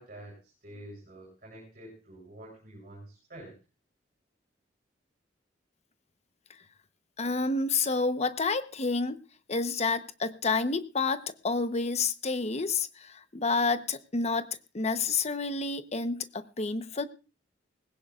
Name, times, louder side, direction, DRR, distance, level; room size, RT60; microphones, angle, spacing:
voice 1, 0.0-3.5, right 1 dB, 50° right, -3 dB, 7.8 m, -48 dB
voice 2, 7.2-9.2 9.5-14.5 14.7-17.1, left 4 dB, 35° left, 11 dB, 1.0 m, -29 dB
19.5 x 17.0 x 2.5 m, 0.33 s
head